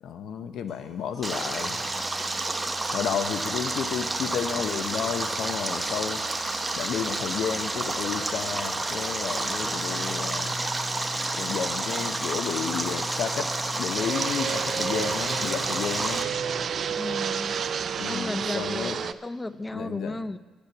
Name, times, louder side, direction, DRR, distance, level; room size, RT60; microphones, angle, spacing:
voice 1, 0.0-1.8 2.9-6.2 6.8-10.5 11.4-13.5 13.8-16.3 18.0-19.0 19.7-20.2, left 8 dB, 75° left, 10 dB, 0.8 m, -32 dB
sound 1, 0.7-16.7, left 2 dB, 35° left, 4.6 m, -44 dB
Stream, 1.2-16.2, right 2 dB, 20° right, 0.9 m, -30 dB
Fixed-wing aircraft airplane, 14.0-19.1, right 7 dB, 55° right, 0.4 m, -30 dB
voice 2, 16.9-17.6 18.0-20.4, left 2 dB, 15° left, 15 dB, 0.5 m, -34 dB
9.8 x 7.0 x 9.1 m, 1.2 s
cardioid pair, 90°, 0 cm